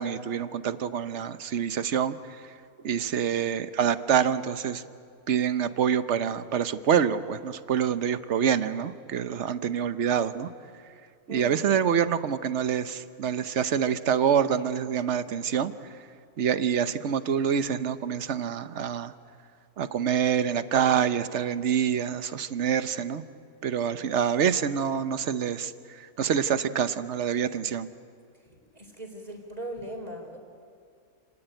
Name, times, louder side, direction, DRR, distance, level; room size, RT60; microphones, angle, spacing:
voice 1, 0.0-2.5 2.8-4.8 5.3-10.5 11.3-15.7 16.4-19.1 19.8-23.2 23.6-27.9, right 8 dB, 55° right, 12 dB, 1.1 m, -26 dB
voice 2, 11.3-11.6 28.7-30.4, right 1 dB, 25° right, 3 dB, 4.0 m, -39 dB
29.5 x 18.5 x 9.0 m, 2.3 s
omnidirectional pair, 1.6 m